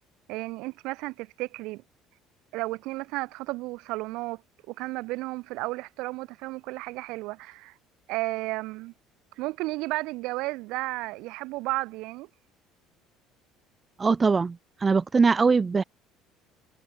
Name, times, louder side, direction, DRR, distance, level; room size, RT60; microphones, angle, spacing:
voice 1, 0.3-1.8 2.5-4.4 4.7-7.7 8.1-8.9 9.4-12.3, right 21 dB, 70° right, 6.2 m, -33 dB
voice 2, 14.0-15.8, right 4 dB, 15° right, 0.8 m, -22 dB
cardioid pair, 175°, 0 cm